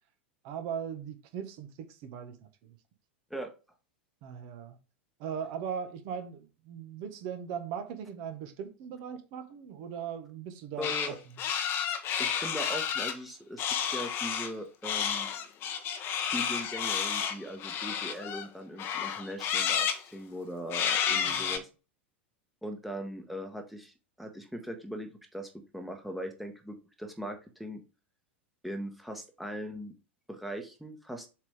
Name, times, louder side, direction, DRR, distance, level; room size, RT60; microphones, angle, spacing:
voice 1, 0.4-2.4 2.6-2.8 4.2-4.8 5.2-11.1 21.1-21.6, right 7 dB, 45° right, 1.4 m, -39 dB
sound 1, 10.8-11.1 11.4-13.1 13.6-14.5 14.8-18.5 18.8-20.0 20.7-21.6, left 8 dB, 35° left, 1.0 m, -31 dB
voice 2, 10.8-11.2 11.6-11.7 12.2-15.3 16.3-21.7 22.6-27.8 28.6-29.9 30.3-31.3, equal, ahead, 1.3 m, -40 dB
7.2 x 4.0 x 3.6 m
figure-of-eight pair, 90°, 6 cm